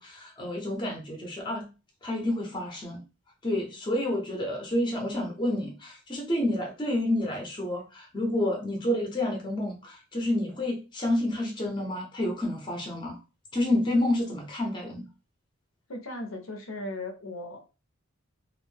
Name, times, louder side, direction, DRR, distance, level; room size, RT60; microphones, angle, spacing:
voice 1, 0.0-1.7 2.0-3.0 3.4-13.2 13.5-15.0, left 1 dB, 20° left, 0 dB, 0.6 m, -29 dB
voice 2, 15.9-17.6, left 1 dB, 70° left, 4 dB, 0.6 m, -37 dB
2.5 x 2.0 x 3.2 m, 0.31 s
head